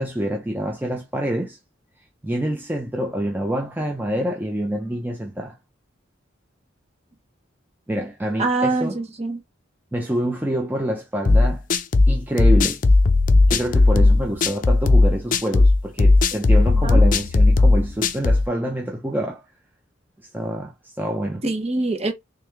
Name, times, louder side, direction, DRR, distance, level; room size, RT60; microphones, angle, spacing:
voice 1, 0.0-1.6 2.2-5.6 7.9-9.0 9.9-11.6 12.1-12.8 13.5-19.4 20.3-21.4, equal, 10° right, 0.5 m, -26 dB
voice 2, 8.4-9.4 16.3-16.4 16.7-17.0 21.4-22.1, right 2 dB, 30° right, 0.9 m, -24 dB
sound 1, 11.3-18.5, left 2 dB, 40° left, 0.4 m, -16 dB
3.3 x 3.2 x 3.3 m
head